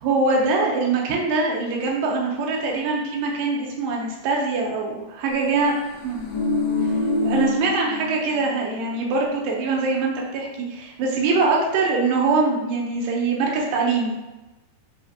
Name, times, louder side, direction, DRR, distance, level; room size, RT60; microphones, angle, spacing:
voice 1, 0.0-5.7 6.0-6.3 7.2-14.2, right 3 dB, 75° right, -2 dB, 2.3 m, -23 dB
sound 1, 5.9-8.6 8.9-9.0, left 2 dB, 80° left, 1.4 m, -25 dB
5.8 x 2.9 x 2.8 m, 1.1 s
omnidirectional pair, 4.2 m